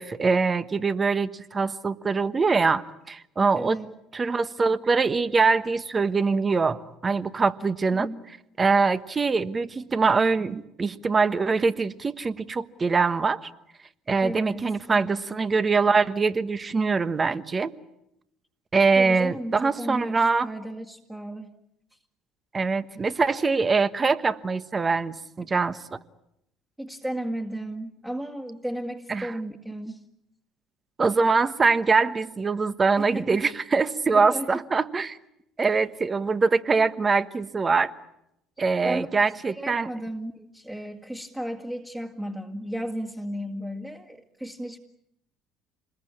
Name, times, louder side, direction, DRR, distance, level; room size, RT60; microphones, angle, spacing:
voice 1, 0.0-3.8 4.1-8.1 8.6-13.5 14.1-17.7 18.7-20.5 22.5-26.0 29.1-29.3 31.0-35.2 35.6-37.9 38.6-39.9, right 4 dB, 30° right, 13 dB, 1.3 m, -23 dB
voice 2, 3.5-3.9 7.9-8.2 14.2-15.2 19.0-21.5 25.4-25.5 26.8-30.0 33.0-33.4 34.1-34.6 38.6-39.1 39.5-44.8, right 1 dB, 10° right, 1 dB, 2.1 m, -34 dB
27.5 x 21.0 x 8.6 m, 0.82 s
hypercardioid pair, 65°, 0 cm